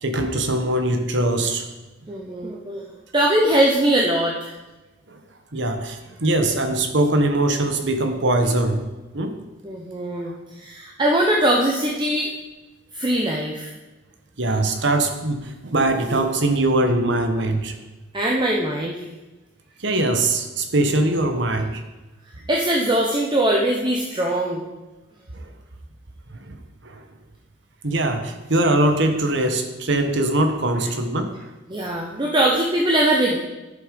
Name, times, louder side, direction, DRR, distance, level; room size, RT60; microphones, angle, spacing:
voice 1, 0.0-1.6 5.1-5.2 5.5-8.8 9.1-9.3 14.4-17.8 19.8-21.8 25.3-25.4 26.3-26.6 26.8-27.0 27.8-31.3, right 2 dB, 65° right, 7 dB, 1.2 m, -22 dB
voice 2, 2.1-2.8 3.1-4.5 9.6-12.3 12.9-13.7 16.1-16.3 18.1-19.0 22.5-24.6 31.7-33.4, right 1 dB, 25° right, -1 dB, 0.9 m, -21 dB
10.5 x 7.5 x 5.2 m, 1.1 s
head